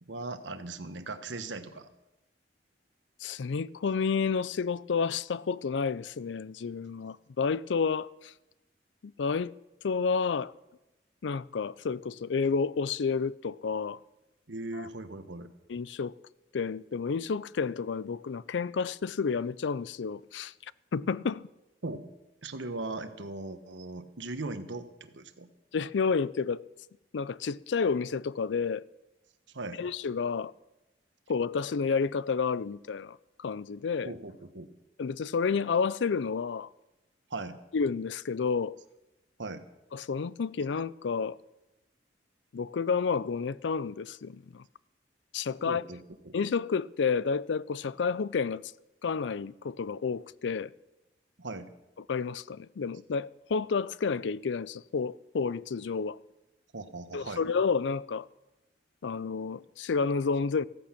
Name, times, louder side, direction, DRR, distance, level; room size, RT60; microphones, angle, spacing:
voice 1, 0.0-1.9 14.5-15.5 21.8-22.1 22.4-25.5 29.5-29.8 34.0-34.7 37.3-37.6 39.4-39.6 45.7-46.3 51.4-51.7 56.7-57.4, right 2 dB, 90° right, 1.3 m, -39 dB
voice 2, 3.2-8.3 9.0-9.5 9.8-10.5 11.2-14.0 14.7-14.9 15.7-16.1 16.5-20.5 20.9-21.5 25.7-26.6 27.1-28.8 29.8-30.5 31.3-34.1 35.0-36.7 37.7-38.8 39.9-41.4 42.5-44.6 45.3-45.8 46.3-48.6 49.0-50.7 52.1-56.2 57.1-58.3 59.0-60.6, left 5 dB, 80° left, 0.4 m, -30 dB
15.0 x 14.5 x 5.9 m
head